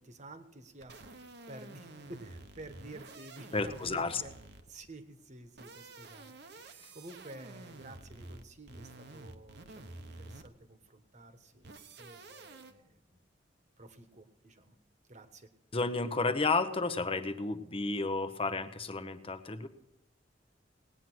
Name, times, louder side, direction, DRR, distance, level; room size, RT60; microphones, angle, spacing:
voice 1, 0.0-4.4 4.6-13.2 13.8-14.8 15.1-15.5, right 2 dB, 40° right, 8 dB, 1.3 m, -51 dB
sound 1, 0.8-4.9 5.4-10.7 11.6-12.7, right 2 dB, 65° right, 1.0 m, -50 dB
voice 2, 3.5-4.2 15.7-19.7, left 3 dB, 30° left, 10 dB, 0.9 m, -32 dB
18.5 x 9.2 x 6.1 m, 0.86 s
head